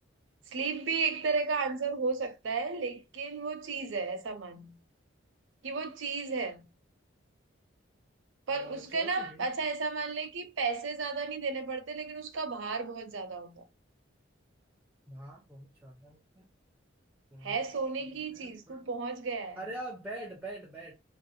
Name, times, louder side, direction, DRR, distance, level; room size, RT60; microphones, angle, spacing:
voice 1, 0.5-4.8 5.6-6.7 8.5-13.6 17.4-19.6, right 4 dB, 80° right, 0.5 m, -33 dB
voice 2, 8.5-9.5 15.1-16.5 17.3-17.6 18.0-18.9 19.6-20.9, right 1 dB, 10° right, 0.4 m, -44 dB
2.4 x 2.0 x 2.5 m
head